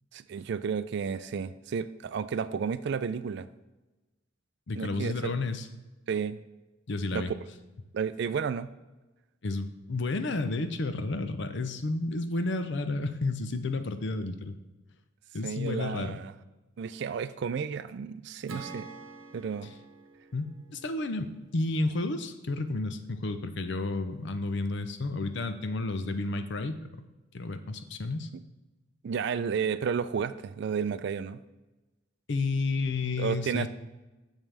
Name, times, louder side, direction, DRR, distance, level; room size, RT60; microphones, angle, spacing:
voice 1, 0.1-3.5 4.8-5.3 6.1-6.4 7.1-7.3 7.9-8.7 15.4-16.3 16.8-18.9 19.3-19.7 29.0-31.4 33.2-33.7, right 6 dB, 60° right, 13 dB, 0.3 m, -32 dB
voice 2, 4.7-5.7 6.9-7.3 9.4-14.6 15.3-16.2 20.3-27.0 27.3-28.3 32.3-33.7, left 2 dB, 65° left, 9 dB, 0.6 m, -31 dB
Acoustic guitar / Strum, 18.5-21.9, right 3 dB, 90° right, 0.9 m, -47 dB
7.3 x 7.3 x 3.4 m, 1.1 s
head